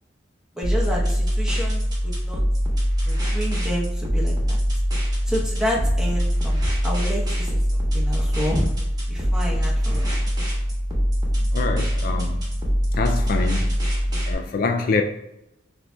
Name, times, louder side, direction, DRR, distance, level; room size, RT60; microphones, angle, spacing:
voice 1, 0.5-2.4 3.0-4.6 5.3-8.6 9.1-10.1, equal, 5° right, 0.9 m, -29 dB
sound 1, 0.6-14.3, equal, 20° right, 1.1 m, -23 dB
voice 2, 11.5-12.4 12.9-13.7 14.3-15.0, left 4 dB, 50° left, 0.3 m, -25 dB
6.8 x 2.7 x 2.3 m
head